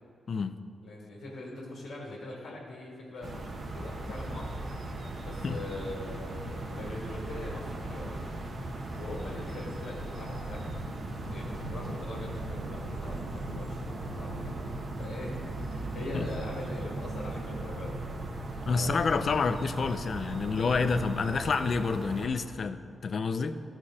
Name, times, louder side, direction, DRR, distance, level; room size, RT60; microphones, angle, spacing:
voice 1, 0.8-4.9 5.2-8.2 8.9-10.8 11.3-18.0 18.7-19.1, left 2 dB, 90° left, -4 dB, 1.8 m, -42 dB
sound 1, 3.2-22.3, right 2 dB, 55° right, 1.1 m, -38 dB
voice 2, 18.7-23.6, left 4 dB, 55° left, 10 dB, 0.5 m, -28 dB
13.0 x 4.5 x 4.9 m, 2.6 s
cardioid pair, 65°, 0 cm